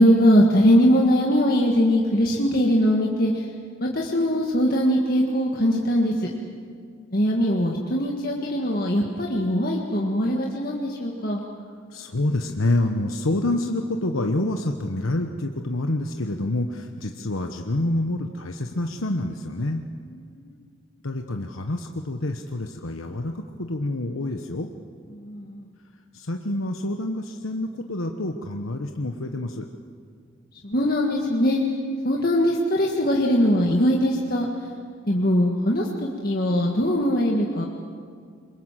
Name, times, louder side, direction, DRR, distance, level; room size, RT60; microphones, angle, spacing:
voice 1, 0.0-3.5 3.8-6.3 7.1-11.4 20.3-20.4 25.1-25.7 30.6-31.6 32.0-34.5 35.1-37.7, equal, 45° left, -1 dB, 1.8 m, -21 dB
voice 2, 11.9-19.8 21.0-24.7 26.1-29.7, left 1 dB, 90° left, 4 dB, 1.2 m, -27 dB
26.5 x 23.0 x 7.6 m, 2.1 s
head